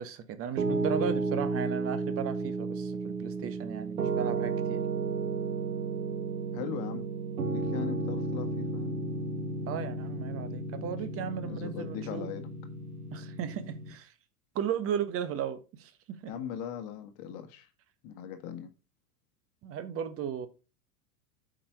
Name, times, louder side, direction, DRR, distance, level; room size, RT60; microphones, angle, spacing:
voice 1, 0.0-4.8 9.7-12.3 13.1-14.1 14.5-16.3 19.6-20.5, right 8 dB, 30° right, 1.3 m, -35 dB
Piano, 0.6-13.9, right 3 dB, 65° right, 1.6 m, -33 dB
voice 2, 6.5-7.1 7.5-9.0 11.3-12.5 16.3-17.7 18.0-18.7, left 9 dB, 40° left, 1.4 m, -39 dB
8.7 x 5.3 x 4.8 m
figure-of-eight pair, 85°, 46 cm